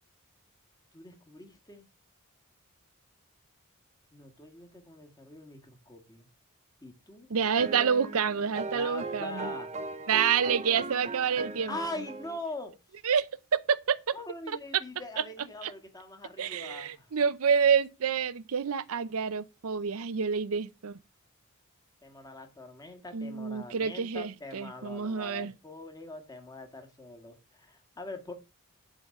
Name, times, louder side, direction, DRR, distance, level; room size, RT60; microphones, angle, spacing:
voice 1, 0.9-1.9 4.1-6.3 6.8-7.3 8.7-9.7 11.7-12.7 14.1-17.1 22.0-28.3, left 2 dB, 15° left, 1.7 m, -43 dB
voice 2, 7.3-9.5 10.1-11.8 13.0-13.3 13.5-14.1 15.6-15.7 16.4-21.0 23.1-25.5, right 6 dB, 75° right, 0.6 m, -28 dB
sound 1, 7.4-12.4, right 3 dB, 30° right, 0.7 m, -39 dB
11.0 x 3.9 x 6.6 m
head